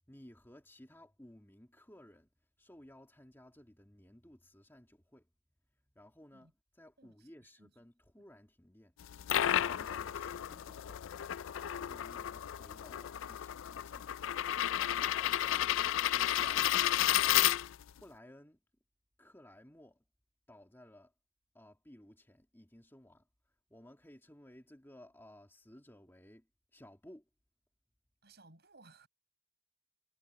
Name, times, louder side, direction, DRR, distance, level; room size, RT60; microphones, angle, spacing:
voice 1, 0.1-2.3 2.6-5.3 6.0-9.0 9.6-11.0 11.7-14.1 14.8-16.9 18.0-18.6 19.2-20.0 20.5-21.1 21.5-23.3 23.7-26.5 26.7-27.2, left 1 dB, 10° left, 2.4 m, -57 dB
voice 2, 7.0-7.7 28.2-29.1, right 3 dB, 50° right, 7.6 m, -61 dB
sound 1, 9.0-18.0, left 12 dB, 65° left, 0.4 m, -32 dB
head